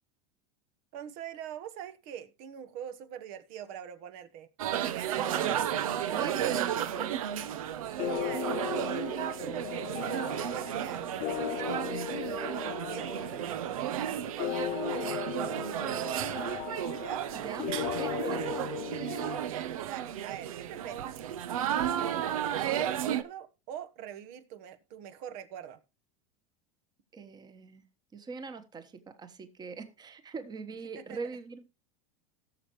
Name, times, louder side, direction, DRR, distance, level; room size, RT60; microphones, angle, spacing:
voice 1, 0.9-4.5 4.7-5.3 8.0-8.5 8.7-11.9 12.2-16.6 17.0-17.3 19.3-21.1 21.7-25.8 30.9-31.2, right 10 dB, 55° right, 1.3 m, -44 dB
sound 1, 4.6-23.2, right 10 dB, 80° right, 0.8 m, -33 dB
voice 2, 5.2-5.6 6.1-7.2 17.4-18.4 27.1-27.8 28.1-31.6, right 4 dB, 25° right, 1.4 m, -42 dB
sound 2, 8.0-19.4, left 17 dB, 40° left, 0.4 m, -37 dB
17.0 x 6.8 x 3.1 m
hypercardioid pair, 110°, 18 cm